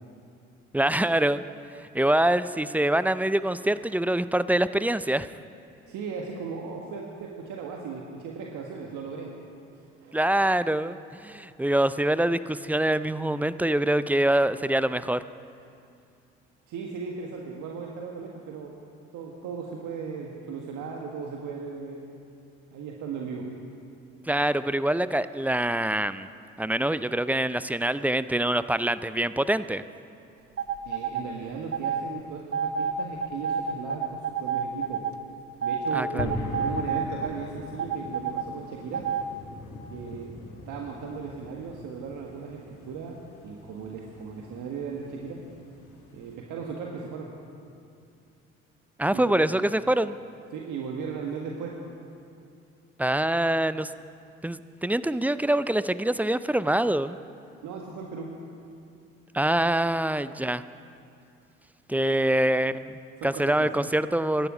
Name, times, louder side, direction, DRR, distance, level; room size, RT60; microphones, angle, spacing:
voice 1, 0.7-1.4 1.9-5.3 10.1-15.2 24.3-26.3 26.6-29.8 35.9-36.3 49.0-50.1 53.0-53.9 54.4-57.2 59.3-60.6 61.9-64.5, right 1 dB, 5° right, 14 dB, 0.4 m, -25 dB
voice 2, 5.9-9.3 9.7-10.2 16.7-18.8 19.1-22.0 22.7-23.5 30.8-35.0 35.6-39.1 39.9-40.3 40.7-43.2 43.4-45.4 46.1-47.3 49.1-49.4 50.5-51.8 57.6-58.4 62.0-62.3 63.2-63.7, right 5 dB, 65° right, 0 dB, 1.5 m, -37 dB
sound 1, 30.6-31.2 31.7-32.0 32.5-35.1 35.6-37.3 37.8-38.4 38.9-39.2, right 7 dB, 45° right, 0.8 m, -29 dB
sound 2, 36.2-46.3, left 1 dB, 70° left, 3.0 m, -41 dB
16.5 x 11.5 x 5.0 m, 2.5 s
hypercardioid pair, 55°, 32 cm